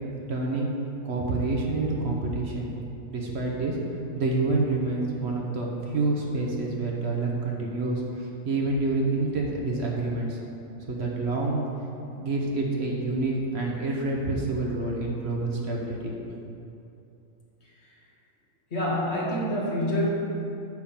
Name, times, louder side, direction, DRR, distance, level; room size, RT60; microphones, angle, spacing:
voice 1, 0.3-0.7 1.0-2.7 3.1-3.8 4.1-8.0 8.4-10.4 10.9-11.6 12.1-16.3, right 2 dB, 55° right, -2 dB, 1.2 m, -27 dB
voice 2, 18.7-20.1, left 1 dB, 55° left, -4 dB, 1.7 m, -26 dB
9.4 x 3.8 x 7.1 m, 2.7 s
omnidirectional pair, 1.4 m